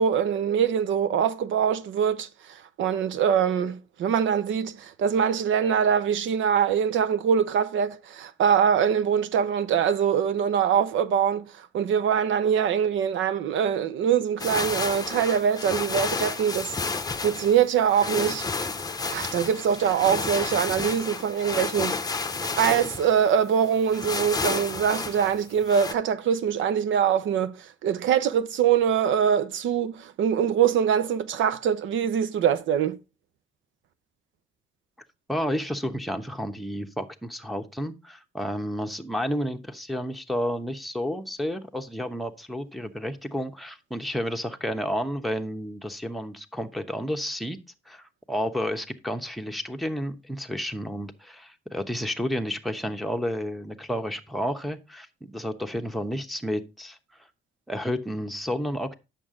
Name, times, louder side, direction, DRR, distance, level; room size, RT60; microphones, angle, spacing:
voice 1, 0.0-16.8 17.2-18.5 19.1-22.0 22.6-33.0, right 8 dB, 75° right, 0.8 m, -23 dB
sound 1, 14.4-25.9, left 4 dB, 20° left, 0.8 m, -31 dB
voice 2, 35.3-47.6 47.9-57.0 57.7-58.9, equal, ahead, 1.0 m, -31 dB
8.6 x 6.5 x 3.7 m
cardioid pair, 90°, 20 cm